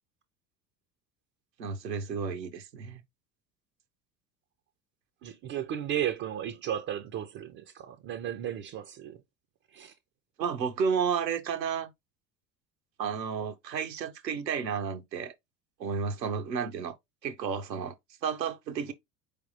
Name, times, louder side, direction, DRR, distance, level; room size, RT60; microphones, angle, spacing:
voice 1, 1.6-3.0 10.4-11.9 13.0-15.3 15.8-17.0 17.2-17.9 18.2-18.9, right 6 dB, 90° right, 0.7 m, -32 dB
voice 2, 5.2-9.2 9.7-9.9, right 10 dB, 30° right, 0.3 m, -34 dB
4.4 x 3.4 x 2.6 m
figure-of-eight pair, 70°, 49 cm